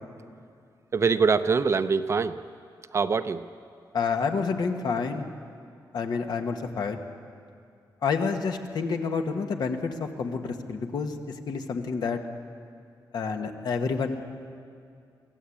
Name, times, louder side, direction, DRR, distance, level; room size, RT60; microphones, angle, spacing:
voice 1, 0.9-2.4 2.9-3.5, right 5 dB, 40° right, 11 dB, 0.7 m, -24 dB
voice 2, 3.9-5.2 5.9-7.0 8.0-11.1 11.5-12.2 13.1-14.4, left 5 dB, 65° left, 5 dB, 1.6 m, -29 dB
24.5 x 14.5 x 8.6 m, 2.4 s
wide cardioid pair, 120°, 8 cm